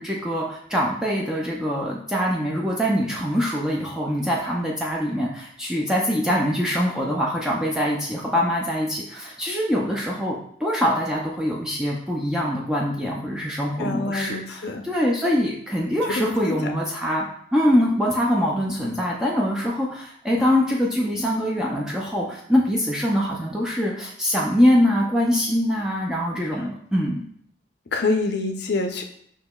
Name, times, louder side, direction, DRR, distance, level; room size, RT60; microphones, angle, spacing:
voice 1, 0.0-27.2, equal, 5° right, -3 dB, 0.4 m, -23 dB
voice 2, 13.8-14.8 16.1-16.6 27.9-29.0, left 3 dB, 60° left, 5 dB, 0.5 m, -26 dB
6.3 x 2.8 x 2.3 m, 0.67 s
head